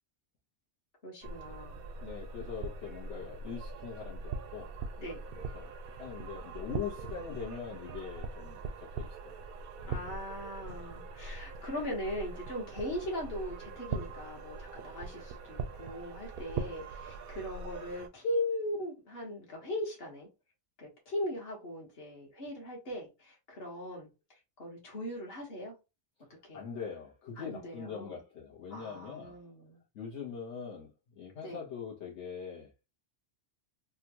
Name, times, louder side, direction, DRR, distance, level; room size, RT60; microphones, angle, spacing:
voice 1, 1.0-1.8 5.0-5.2 9.8-20.3 20.8-24.1 24.6-25.7 26.4-26.6 27.4-28.2 28.7-29.8 31.4-31.6, left 1 dB, 55° left, 1.6 m, -39 dB
sound 1, 1.2-18.1, right 4 dB, 60° right, 0.7 m, -42 dB
voice 2, 2.0-4.7 5.3-5.7 6.0-9.4 26.5-29.4 29.9-32.7, left 6 dB, 75° left, 1.4 m, -42 dB
3.6 x 2.3 x 2.8 m
omnidirectional pair, 1.2 m